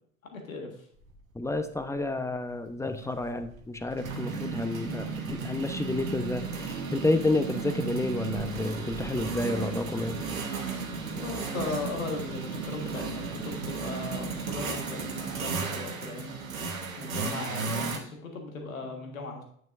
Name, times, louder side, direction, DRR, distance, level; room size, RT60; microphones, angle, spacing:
voice 1, 0.3-0.7 11.1-16.4 17.0-19.4, left 3 dB, 85° left, 2 dB, 1.6 m, -37 dB
sound 1, 1.1-1.2 1.5-1.8 3.0-18.0, right 4 dB, 85° right, 1.2 m, -34 dB
voice 2, 1.3-10.2, left 2 dB, 5° left, 9 dB, 0.9 m, -30 dB
9.2 x 7.9 x 2.6 m, 0.62 s
figure-of-eight pair, 65°, 39 cm